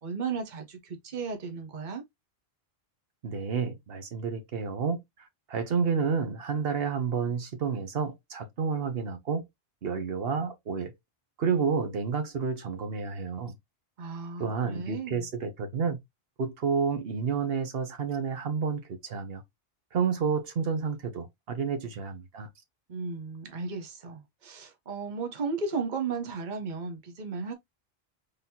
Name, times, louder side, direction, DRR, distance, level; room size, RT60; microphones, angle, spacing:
voice 1, 0.0-2.0 14.0-15.3 22.9-27.5, right 4 dB, 50° right, 1.1 m, -35 dB
voice 2, 3.2-9.4 9.8-10.9 11.4-13.6 14.4-16.0 16.4-19.4 19.9-22.5, right 6 dB, 70° right, 1.2 m, -30 dB
4.0 x 3.4 x 2.8 m
omnidirectional pair, 1.0 m